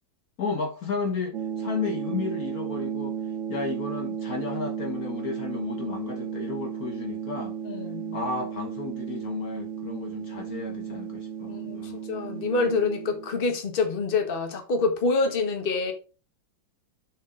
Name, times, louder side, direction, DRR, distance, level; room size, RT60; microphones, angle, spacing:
voice 1, 0.4-3.2 3.5-7.6 8.1-12.0, left 4 dB, 55° left, 1.5 m, -33 dB
sound 1, 1.3-13.3, right 8 dB, 70° right, 0.7 m, -34 dB
voice 2, 7.6-8.2 11.5-15.9, left 4 dB, 30° left, 1.5 m, -26 dB
6.9 x 6.5 x 3.8 m
omnidirectional pair, 2.0 m